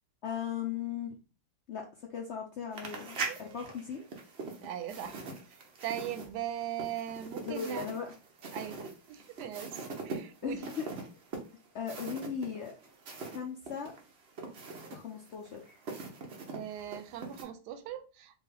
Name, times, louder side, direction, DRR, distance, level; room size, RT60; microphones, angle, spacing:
voice 1, 0.2-1.1 1.7-4.0 7.4-8.1 10.4-10.9 11.7-12.7 13.3-13.9 14.9-15.8, left 7 dB, 70° left, 0.6 m, -38 dB
sound 1, 2.7-13.4 13.7-17.4, right 4 dB, 50° right, 0.9 m, -42 dB
voice 2, 3.3-3.6 4.6-5.2 5.8-7.8 8.5-10.6 16.5-18.4, right 10 dB, 90° right, 1.2 m, -39 dB
3.7 x 2.5 x 3.3 m
omnidirectional pair, 1.7 m